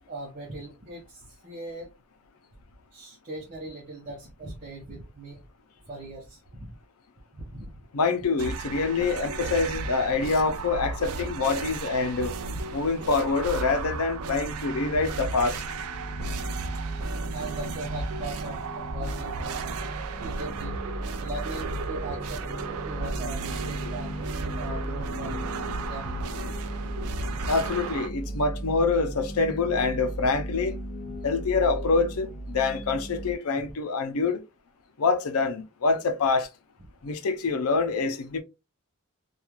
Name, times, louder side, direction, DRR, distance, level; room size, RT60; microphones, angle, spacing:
voice 1, 0.1-1.9 2.9-5.4 5.9-6.7 7.4-7.7 12.5-12.7 17.3-19.6 20.2-20.8 21.2-22.4 22.9-24.1 24.6-25.5 25.8-26.1 27.3-27.4 31.1-31.2 33.6-33.7, right 2 dB, 35° right, 0.7 m, -39 dB
voice 2, 7.9-12.3 12.7-15.6 27.5-30.8 31.2-34.4 35.0-36.5 37.0-38.4, left 4 dB, 90° left, 0.5 m, -26 dB
sound 1, 8.4-28.1, right 3 dB, 85° right, 0.4 m, -34 dB
sound 2, 13.6-33.4, right 1 dB, 35° left, 0.5 m, -36 dB
3.0 x 2.3 x 2.3 m
head